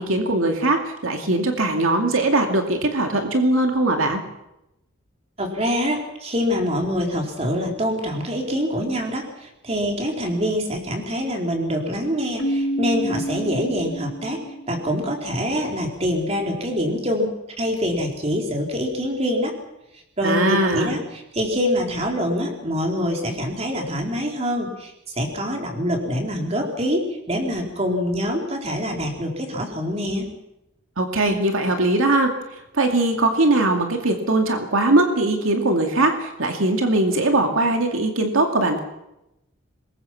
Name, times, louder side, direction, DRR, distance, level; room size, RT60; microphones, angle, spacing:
voice 1, 0.0-4.2 20.2-21.0 31.0-38.8, right 2 dB, 85° right, 4 dB, 2.5 m, -20 dB
voice 2, 5.4-17.3 17.6-19.5 20.2-30.2, equal, 30° right, 1 dB, 4.1 m, -25 dB
Keyboard (musical), 12.4-15.0, right 1 dB, 80° left, 1.9 m, -28 dB
24.5 x 21.5 x 5.9 m, 0.87 s
head